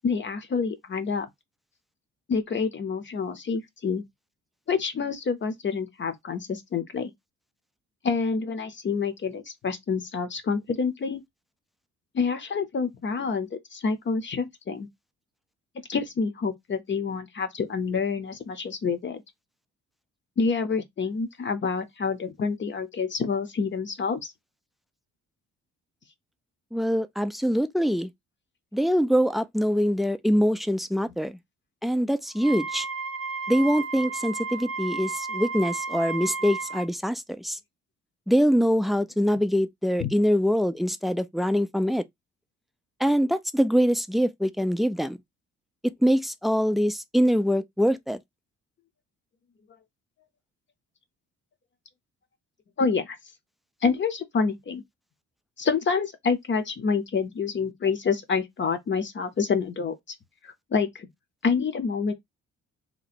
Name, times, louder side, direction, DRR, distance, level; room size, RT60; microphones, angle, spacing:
voice 1, 0.0-1.3 2.3-4.0 4.7-7.1 8.0-11.2 12.1-14.9 15.9-19.2 20.4-24.2 40.0-40.1 52.8-53.2 53.8-54.8 55.6-59.9 60.4-61.1 61.4-62.1, left 5 dB, 40° left, 0.7 m, -27 dB
voice 2, 26.7-28.1 28.7-31.4 31.8-32.9 33.5-37.6 38.3-42.0 43.0-45.2 45.8-48.2, equal, ahead, 0.3 m, -24 dB
Wind instrument woodwind instrument, 32.4-36.9, right 4 dB, 50° right, 0.6 m, -33 dB
2.9 x 2.2 x 4.1 m
cardioid pair, 90°, 30 cm